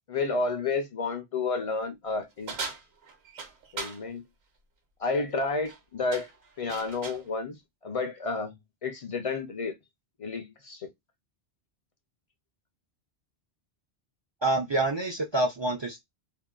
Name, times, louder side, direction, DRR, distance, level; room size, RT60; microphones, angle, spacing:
voice 1, 0.1-2.6 3.7-4.2 5.0-6.3 6.6-9.8 10.2-10.9, left 3 dB, 45° left, 0.4 m, -31 dB
sound 1, 2.5-4.0 5.5-5.8 6.1-7.3, right 4 dB, 70° right, 1.1 m, -38 dB
voice 2, 14.4-16.0, right 2 dB, 45° right, 0.3 m, -27 dB
2.8 x 2.1 x 2.2 m
omnidirectional pair, 1.1 m